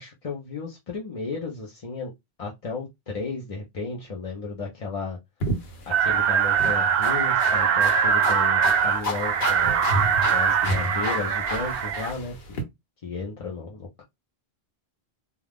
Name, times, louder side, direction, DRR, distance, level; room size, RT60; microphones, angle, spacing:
voice 1, 0.0-2.1 2.4-5.2 5.9-9.8 10.3-12.6 13.0-14.0, left 4 dB, 40° left, 0.6 m, -34 dB
sound 1, 5.4-12.6, left 1 dB, 70° left, 1.0 m, -31 dB
sound 2, 5.9-12.1, right 7 dB, 70° right, 0.7 m, -22 dB
2.4 x 2.3 x 3.3 m
omnidirectional pair, 1.1 m